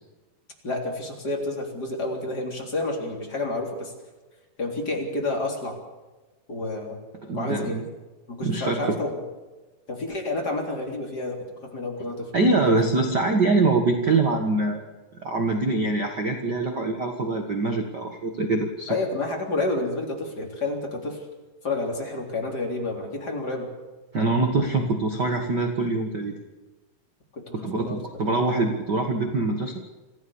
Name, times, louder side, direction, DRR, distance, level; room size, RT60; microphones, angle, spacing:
voice 1, 0.6-3.9 4.6-5.8 6.5-7.0 7.3-7.8 8.3-9.2 9.9-12.3 18.9-21.3 21.6-23.7 24.1-24.2 27.3-28.0, left 2 dB, 25° left, 1 dB, 3.7 m, -29 dB
voice 2, 7.2-7.8 8.4-9.0 12.3-14.8 15.2-18.9 24.1-26.4 27.5-29.8, right 3 dB, 55° right, 4 dB, 1.1 m, -24 dB
26.5 x 15.5 x 7.1 m, 1.2 s
omnidirectional pair, 4.7 m